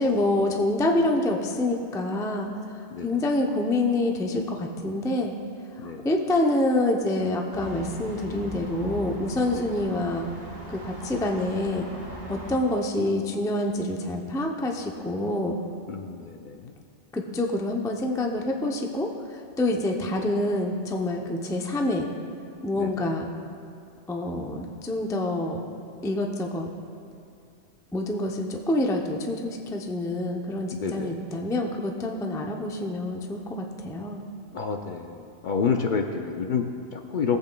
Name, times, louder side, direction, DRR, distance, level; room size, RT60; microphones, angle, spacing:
voice 1, 0.0-2.5 3.0-5.3 5.8-10.3 10.7-11.9 12.3-15.6 17.1-22.1 22.6-23.3 24.1-25.6 26.0-26.7 27.9-34.2, left 1 dB, 5° left, 2 dB, 0.4 m, -27 dB
sound 1, 7.5-12.6, right 1 dB, 55° right, 1.9 m, -40 dB
voice 2, 15.9-16.7 22.8-22.9 30.7-31.2 34.5-37.4, left 5 dB, 60° left, 4 dB, 0.6 m, -29 dB
18.0 x 8.1 x 2.2 m, 2.4 s
omnidirectional pair, 1.1 m